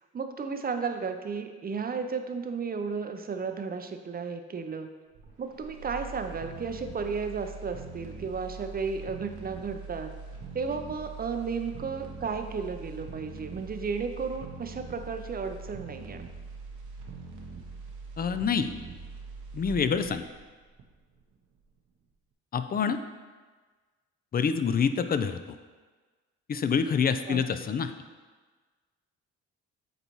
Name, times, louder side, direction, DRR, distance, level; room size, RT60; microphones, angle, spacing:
voice 1, 0.1-4.9 5.4-10.1 10.5-16.3 27.3-27.4, right 5 dB, 30° right, 6 dB, 0.5 m, -33 dB
sound 1, 5.1-21.2 21.6-21.7, right 4 dB, 80° right, 1.0 m, -43 dB
voice 2, 18.2-18.7 19.5-20.2 22.5-23.0 24.3-25.6 26.5-27.9, left 6 dB, 30° left, 10 dB, 0.4 m, -26 dB
9.1 x 4.0 x 3.0 m, 1.4 s
cardioid pair, 90°, 30 cm